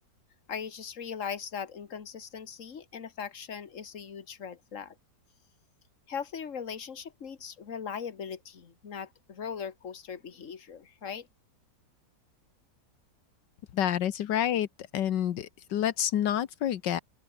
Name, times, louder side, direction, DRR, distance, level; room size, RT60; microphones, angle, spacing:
voice 1, 0.5-5.0 6.1-11.3, left 7 dB, 45° left, 2.0 m, -39 dB
voice 2, 13.7-14.7 14.9-17.0, left 10 dB, 85° left, 1.7 m, -28 dB
open air
omnidirectional pair, 1.9 m